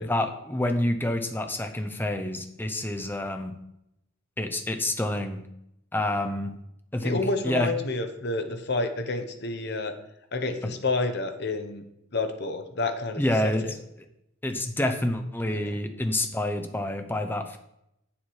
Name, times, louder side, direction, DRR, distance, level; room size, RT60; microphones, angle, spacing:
voice 1, 0.0-3.6 4.4-5.4 5.9-6.5 6.9-7.7 10.6-10.7 13.2-13.7 14.4-17.6, left 1 dB, 10° left, 6 dB, 0.6 m, -28 dB
voice 2, 7.0-10.0 10.3-11.8 12.1-13.7 15.5-15.8, left 3 dB, 50° left, 7 dB, 0.9 m, -29 dB
7.8 x 7.3 x 4.7 m, 0.81 s
head